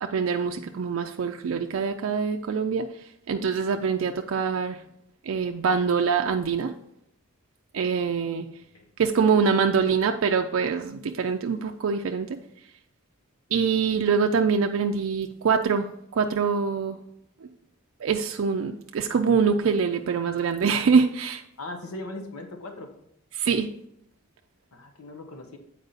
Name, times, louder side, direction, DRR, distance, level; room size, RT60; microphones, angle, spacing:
voice 1, 0.0-2.9 3.3-4.8 5.3-6.7 7.7-8.5 9.0-12.4 13.5-15.9 16.2-17.0 18.0-21.4 23.3-23.7, right 5 dB, 65° right, 4 dB, 0.4 m, -24 dB
voice 2, 21.6-22.9 24.7-25.6, left 2 dB, 85° left, 5 dB, 1.0 m, -39 dB
8.0 x 4.5 x 4.0 m, 0.73 s
head